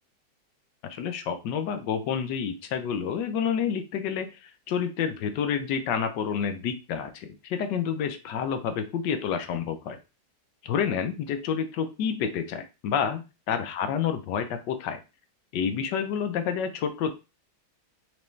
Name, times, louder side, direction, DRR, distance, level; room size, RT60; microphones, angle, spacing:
voice 1, 0.8-10.0 10.6-15.0 15.5-17.1, left 7 dB, 70° left, 8 dB, 1.2 m, -29 dB
4.6 x 3.0 x 3.1 m, 0.28 s
omnidirectional pair, 2.2 m